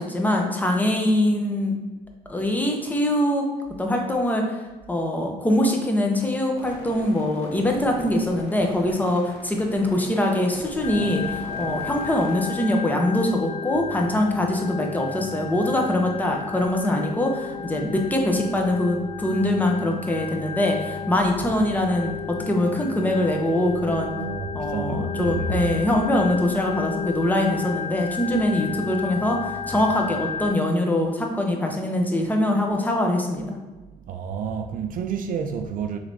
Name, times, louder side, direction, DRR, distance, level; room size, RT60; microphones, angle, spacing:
voice 1, 0.0-1.7 2.3-3.4 3.8-4.6 4.9-24.1 24.5-33.6, left 1 dB, 10° left, 0.7 m, -23 dB
sound 1, 6.6-12.4, left 2 dB, 75° left, 1.0 m, -40 dB
Organ, 10.8-30.5, left 7 dB, 35° left, 0.4 m, -33 dB
voice 2, 24.1-25.7 34.0-36.0, right 5 dB, 55° right, 0.4 m, -29 dB
6.1 x 3.2 x 2.7 m
cardioid pair, 110°, 17 cm